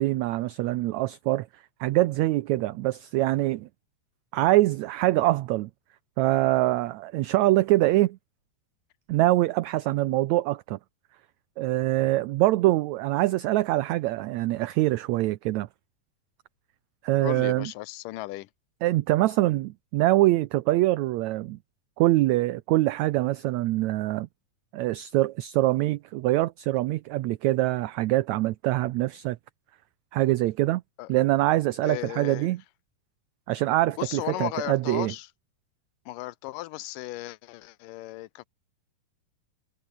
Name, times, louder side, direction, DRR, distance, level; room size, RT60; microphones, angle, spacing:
voice 1, 0.0-1.5 1.8-3.7 4.3-5.7 6.2-8.2 9.1-10.8 11.6-15.7 17.0-17.7 18.8-21.6 22.0-24.3 24.7-29.4 30.1-30.8 31.1-32.6 33.5-35.1, right 17 dB, 75° right, 1.7 m, -24 dB
voice 2, 17.2-18.5 31.0-31.1 31.8-32.5 34.0-35.3 36.1-38.5, left 18 dB, 85° left, 2.3 m, -35 dB
omnidirectional pair, 3.9 m